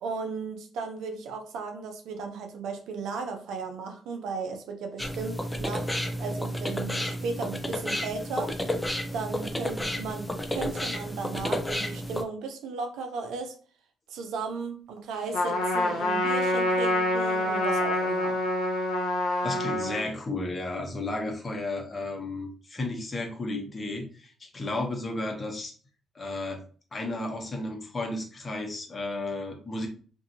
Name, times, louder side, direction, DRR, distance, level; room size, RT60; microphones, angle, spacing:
voice 1, 0.0-5.9 6.2-8.5 9.1-13.6 14.1-18.4, right 4 dB, 75° right, 5 dB, 0.5 m, -35 dB
sound 1, 5.0-12.2, left 1 dB, 15° left, 0.6 m, -31 dB
Trumpet, 15.3-20.0, left 1 dB, 80° left, 0.7 m, -26 dB
voice 2, 19.4-25.7 26.1-26.6 26.9-29.9, left 2 dB, 35° left, 2 dB, 1.0 m, -33 dB
2.6 x 2.6 x 2.7 m, 0.41 s
hypercardioid pair, 50°, 0 cm